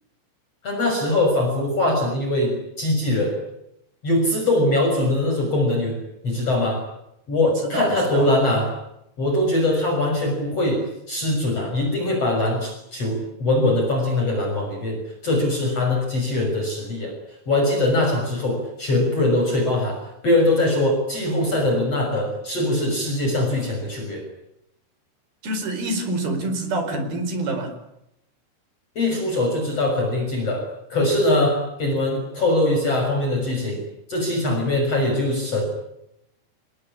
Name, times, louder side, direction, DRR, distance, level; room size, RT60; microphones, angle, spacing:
voice 1, 0.6-3.3 4.0-6.0 6.2-6.8 7.3-8.7 9.2-10.8 11.1-15.0 15.2-17.1 17.5-24.2 29.0-30.6 30.9-33.8 34.1-35.6, left 1 dB, 30° left, 2 dB, 7.1 m, -22 dB
voice 2, 7.4-8.3 25.4-27.7, right 2 dB, 50° right, 7 dB, 6.3 m, -27 dB
29.5 x 20.0 x 9.8 m, 0.82 s
omnidirectional pair, 5.5 m